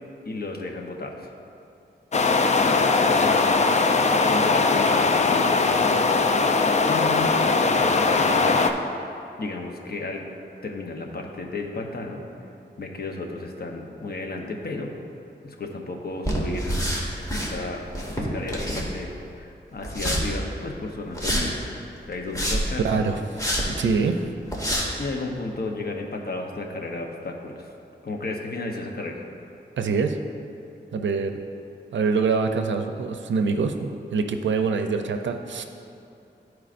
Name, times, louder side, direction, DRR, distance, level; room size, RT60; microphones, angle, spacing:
voice 1, 0.2-1.3 2.5-3.8 4.1-5.9 6.9-8.6 9.4-10.2 10.6-12.2 12.8-14.9 15.4-16.8 17.3-17.8 18.1-21.5 22.0-23.0 25.0-27.7 28.0-29.2, left 2 dB, 55° left, 1 dB, 0.8 m, -33 dB
sound 1, 2.1-8.7, left 3 dB, 40° left, 0.4 m, -20 dB
sound 2, 16.2-17.5 17.9-19.2 19.8-20.2 21.1-21.4 22.1-22.8 23.4-23.6 24.1-24.2 24.5-24.8, equal, 20° left, 1.3 m, -26 dB
voice 2, 22.8-23.2 23.6-24.2 29.8-30.2 30.9-31.4 31.9-35.6, right 5 dB, 90° right, 6 dB, 0.5 m, -24 dB
12.0 x 4.6 x 2.5 m, 2.7 s
wide cardioid pair, 75°, 19 cm